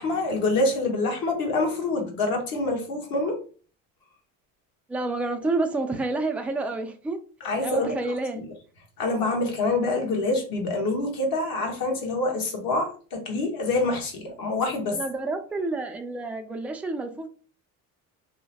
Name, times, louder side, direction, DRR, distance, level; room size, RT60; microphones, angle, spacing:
voice 1, 0.0-3.4 7.4-7.9 8.3-8.4 9.0-15.0, left 2 dB, 55° left, 1.2 m, -26 dB
voice 2, 4.9-7.2 7.6-8.4 14.9-17.3, right 2 dB, 5° right, 0.3 m, -29 dB
2.8 x 2.1 x 2.8 m
hypercardioid pair, 75°, 42 cm